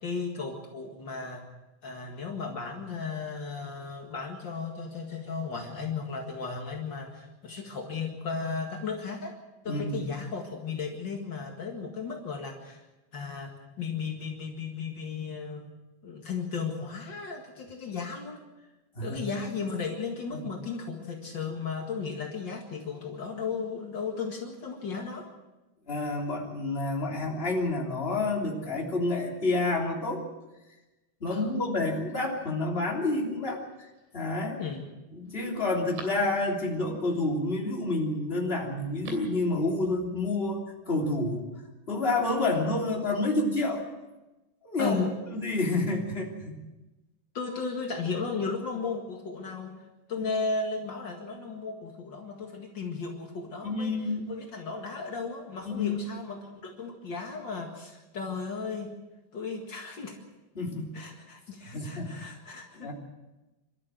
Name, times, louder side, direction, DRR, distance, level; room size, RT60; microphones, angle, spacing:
voice 1, 0.0-1.4 1.8-9.4 9.6-12.8 13.1-15.7 16.0-18.4 19.0-25.3 31.3-31.5 34.6-34.8 44.8-45.1 47.3-49.8 50.1-53.9 54.3-58.9 59.3-60.2 60.9-62.9, left 4 dB, 70° left, 1 dB, 1.0 m, -35 dB
voice 2, 9.6-10.1 18.9-19.2 25.9-30.2 31.2-33.9 34.1-34.6 35.1-41.5 41.9-43.8 44.6-44.9 45.3-46.6 53.6-54.3 55.6-56.0 60.5-60.9 61.7-62.3 62.7-62.9, left 2 dB, 15° left, -1 dB, 2.5 m, -29 dB
Telephone, 33.7-34.2 34.8-34.9 35.3-36.8 38.8-39.4 39.7-39.8, right 5 dB, 85° right, 5.3 m, -47 dB
26.5 x 13.0 x 7.7 m, 1.1 s
omnidirectional pair, 5.3 m